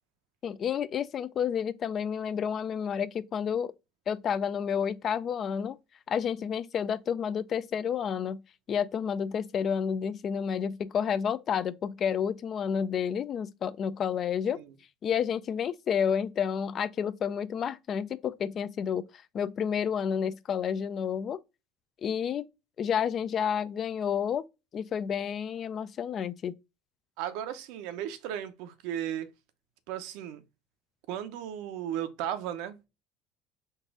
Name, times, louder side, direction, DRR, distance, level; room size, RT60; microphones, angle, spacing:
voice 1, 0.4-3.7 4.1-5.8 6.1-8.4 8.7-14.6 15.0-21.4 22.0-22.4 22.8-24.4 24.7-26.5, left 7 dB, 45° left, 0.3 m, -30 dB
voice 2, 27.2-29.3 29.9-30.4 31.1-32.9, right 10 dB, 75° right, 0.7 m, -35 dB
4.0 x 2.5 x 3.6 m
supercardioid pair, 100°, 0 cm